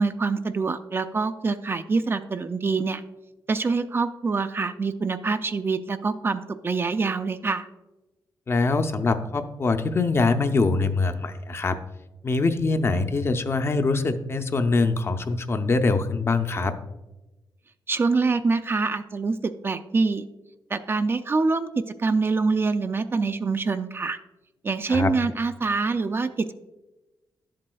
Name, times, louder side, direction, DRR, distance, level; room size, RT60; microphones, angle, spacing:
voice 1, 0.0-3.0 3.5-7.7 17.9-20.2 20.7-24.2 24.6-26.5, right 4 dB, 30° right, 10 dB, 0.3 m, -25 dB
voice 2, 8.5-11.8 12.2-16.7 24.9-25.1, left 3 dB, 35° left, 8 dB, 0.5 m, -23 dB
11.5 x 7.4 x 2.3 m, 1.0 s
wide cardioid pair, 125°, 8 cm